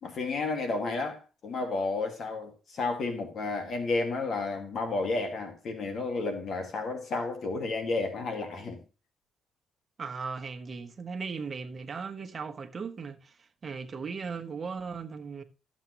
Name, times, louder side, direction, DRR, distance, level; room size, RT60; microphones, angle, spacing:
voice 1, 0.0-8.8, left 3 dB, 60° left, 1.9 m, -32 dB
voice 2, 10.0-15.4, right 5 dB, 40° right, 1.2 m, -37 dB
13.5 x 7.3 x 3.0 m
cardioid pair, 90°, 0 cm